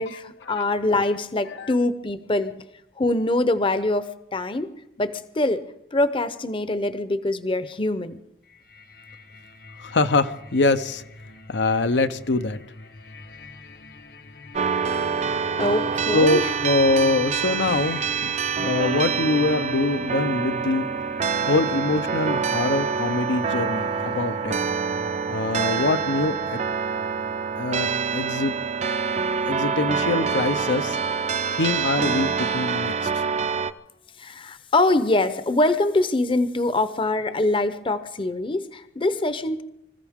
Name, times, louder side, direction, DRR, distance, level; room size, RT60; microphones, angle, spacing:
voice 1, 0.0-2.5 3.0-4.7 5.0-5.6 5.9-8.2 15.6-16.5 34.2-39.6, left 2 dB, 30° left, 0.7 m, -24 dB
sound 1, 8.4-28.2, left 2 dB, 60° left, 0.9 m, -45 dB
voice 2, 9.8-11.0 11.5-12.6 16.1-20.9 21.4-24.6 25.3-26.6 27.6-28.5 29.5-31.0 31.5-33.2, left 3 dB, 80° left, 0.7 m, -24 dB
sound 2, 14.5-33.7, right 6 dB, 40° right, 0.5 m, -26 dB
25.0 x 14.5 x 3.6 m
head